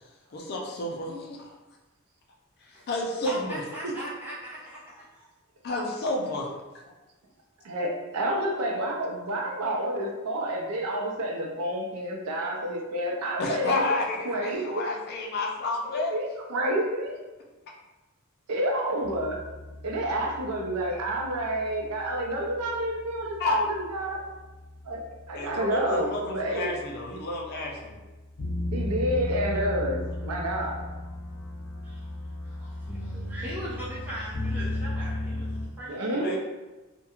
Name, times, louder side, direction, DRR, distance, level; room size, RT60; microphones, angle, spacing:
voice 1, 0.3-1.5 2.6-3.6 5.6-6.5 13.4-16.1 23.4-23.6 25.3-28.0 36.1-36.4, left 2 dB, 45° left, -1 dB, 0.4 m, -30 dB
voice 2, 2.7-5.3 31.8-32.1 32.4-36.2, equal, 10° right, -11 dB, 0.9 m, -40 dB
voice 3, 7.6-13.8 14.3-14.8 15.9-17.1 18.5-19.4 19.8-24.2 24.9-25.0 25.3-26.7 28.7-30.8 35.9-36.4, right 1 dB, 80° right, 1 dB, 0.5 m, -29 dB
sound 1, 19.0-35.7, left 1 dB, 85° left, 0.7 m, -36 dB
2.3 x 2.1 x 2.9 m, 1.1 s
head